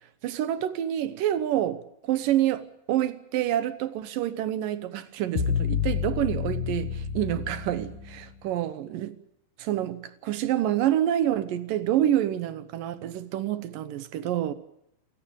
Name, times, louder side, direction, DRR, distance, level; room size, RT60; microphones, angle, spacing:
voice 1, 0.2-9.2 9.6-14.5, right 12 dB, 70° right, 2.3 m, -27 dB
sound 1, 5.4-8.4, left 8 dB, 65° left, 2.5 m, -29 dB
28.5 x 14.5 x 8.9 m
omnidirectional pair, 4.8 m